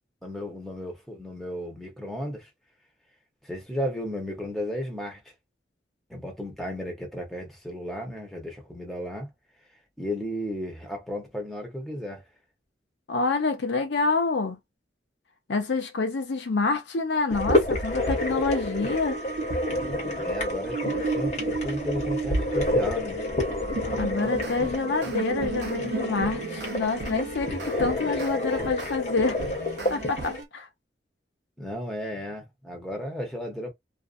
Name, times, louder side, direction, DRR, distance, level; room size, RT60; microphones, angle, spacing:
voice 1, 0.2-2.5 3.4-5.3 6.1-9.3 10.0-12.2 20.1-23.2 31.6-33.7, equal, ahead, 0.9 m, -34 dB
voice 2, 13.1-14.6 15.5-19.2 24.0-29.4 29.9-30.7, left 3 dB, 75° left, 0.6 m, -27 dB
sound 1, 17.3-30.4, left 1 dB, 40° left, 0.9 m, -29 dB
sound 2, 18.6-28.0, right 4 dB, 55° right, 0.4 m, -34 dB
sound 3, 24.0-29.0 29.4-30.5, right 2 dB, 75° right, 0.8 m, -39 dB
2.5 x 2.3 x 2.5 m
head